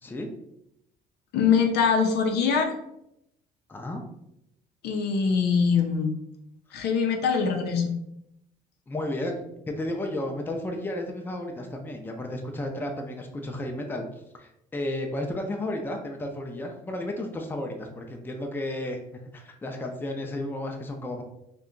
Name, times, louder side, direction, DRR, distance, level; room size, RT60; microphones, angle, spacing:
voice 1, 1.3-2.7 4.8-6.2 6.7-8.0, left 6 dB, 75° left, 4 dB, 0.6 m, -23 dB
voice 2, 3.7-4.0 8.9-14.0 14.4-19.0 19.3-21.2, left 1 dB, 10° left, 3 dB, 0.4 m, -33 dB
2.7 x 2.2 x 3.7 m, 0.80 s
cardioid pair, 110°, 17 cm